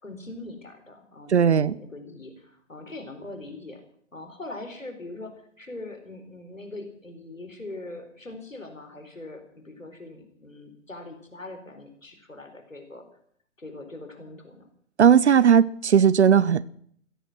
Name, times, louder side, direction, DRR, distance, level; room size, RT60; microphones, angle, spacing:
voice 1, 0.0-3.8 4.1-13.1 13.6-14.7, left 2 dB, 85° left, 6 dB, 4.3 m, -41 dB
voice 2, 1.3-1.7 15.0-16.7, right 8 dB, 60° right, 21 dB, 0.8 m, -17 dB
16.0 x 14.5 x 6.1 m, 0.63 s
figure-of-eight pair, 125°, 38 cm